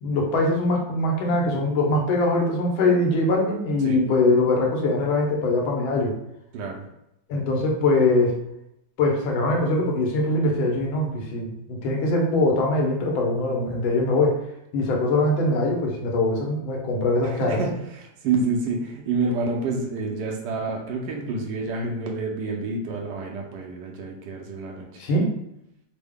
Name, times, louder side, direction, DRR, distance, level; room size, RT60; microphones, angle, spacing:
voice 1, 0.0-6.1 7.3-8.4 9.0-14.4 14.7-17.6 25.0-25.3, left 2 dB, 90° left, 0 dB, 1.5 m, -22 dB
voice 2, 6.5-6.9 17.2-25.0, right 3 dB, 70° right, 0 dB, 1.1 m, -28 dB
3.7 x 2.0 x 3.4 m, 0.82 s
omnidirectional pair, 2.1 m